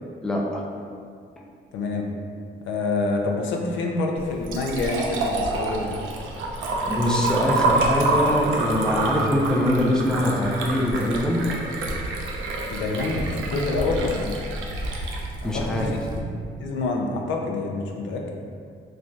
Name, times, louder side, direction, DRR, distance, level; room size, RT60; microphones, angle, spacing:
voice 1, 0.2-0.6 6.9-11.4 15.4-15.9, left 1 dB, 5° left, -2 dB, 0.4 m, -23 dB
voice 2, 1.7-2.1 2.7-6.0 12.7-14.4 15.4-15.9 16.2-16.3 16.6-18.3, left 3 dB, 75° left, 1 dB, 0.4 m, -27 dB
Liquid, 4.2-16.2, right 2 dB, 80° right, 0.4 m, -27 dB
3.1 x 2.3 x 2.6 m, 2.2 s
cardioid pair, 90°, 20 cm